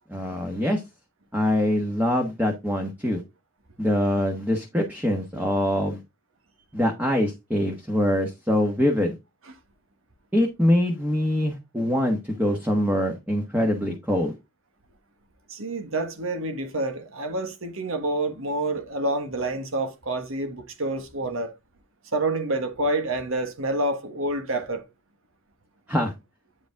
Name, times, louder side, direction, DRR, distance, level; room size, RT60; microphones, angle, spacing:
voice 1, 0.1-0.8 1.3-3.2 3.8-6.0 6.7-9.1 10.3-14.4 25.9-26.1, left 1 dB, 10° right, 1.2 m, -24 dB
voice 2, 15.5-21.5 22.1-24.8, right 2 dB, 80° right, 1.5 m, -28 dB
8.8 x 5.1 x 3.5 m
head